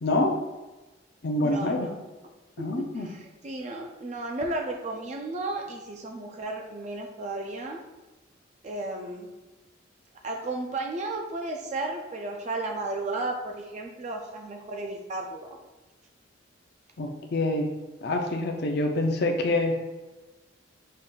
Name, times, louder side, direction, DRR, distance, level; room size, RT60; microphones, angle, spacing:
voice 1, 0.0-0.4 1.2-1.9 2.6-3.1 17.0-17.7 18.0-19.8, left 2 dB, 55° left, 2 dB, 0.5 m, -26 dB
voice 2, 1.4-1.9 2.6-7.8 8.6-9.3 10.2-15.6, right 2 dB, 35° right, 2 dB, 0.3 m, -34 dB
5.3 x 2.4 x 3.8 m, 1.2 s
head